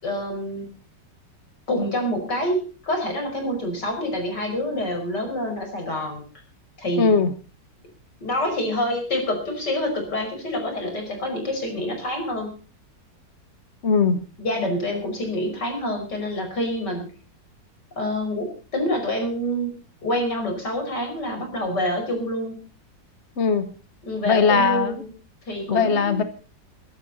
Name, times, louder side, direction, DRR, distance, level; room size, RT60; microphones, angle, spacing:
voice 1, 0.0-0.7 1.7-6.2 6.8-7.1 8.2-12.5 14.4-17.1 18.0-19.7 20.0-22.5 24.0-25.1 25.5-26.2, left 1 dB, 70° left, 3 dB, 6.1 m, -27 dB
voice 2, 7.0-7.3 13.8-14.2 23.4-23.7 24.2-24.9 25.7-26.2, left 5 dB, 45° left, 10 dB, 1.3 m, -19 dB
23.0 x 11.5 x 4.1 m, 0.36 s
omnidirectional pair, 1.9 m